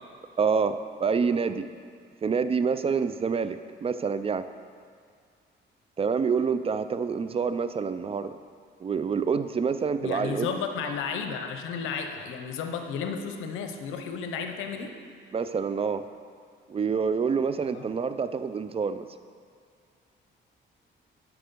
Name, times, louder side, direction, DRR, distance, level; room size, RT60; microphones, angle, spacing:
voice 1, 0.4-1.6 2.2-4.4 6.0-8.3 8.8-10.5 15.3-16.0 16.7-19.0, right 5 dB, 30° right, 11 dB, 0.4 m, -27 dB
voice 2, 10.0-14.9 17.7-17.9, left 6 dB, 90° left, 5 dB, 0.7 m, -33 dB
7.8 x 6.1 x 5.3 m, 2.1 s
cardioid pair, 90°, 20 cm